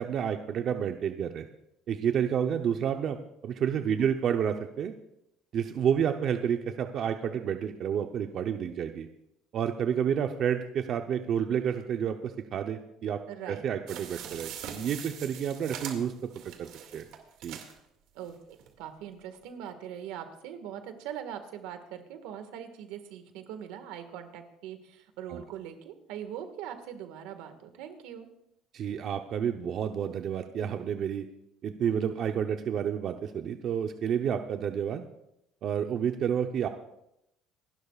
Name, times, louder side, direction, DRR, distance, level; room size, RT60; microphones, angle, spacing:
voice 1, 0.0-1.5 1.9-4.9 5.5-9.1 9.5-17.0 17.4-17.6 25.3-25.4 28.7-31.3 31.6-35.0 35.6-36.7, right 8 dB, 50° right, 6 dB, 0.8 m, -30 dB
voice 2, 13.3-13.6 18.2-18.4 18.8-28.3, right 9 dB, 90° right, 7 dB, 1.7 m, -41 dB
sound 1, 13.9-17.8 18.3-18.4 18.6-18.7, right 8 dB, 75° right, 2.2 m, -42 dB
27.5 x 12.0 x 2.4 m, 0.82 s
cardioid pair, 125°, 0 cm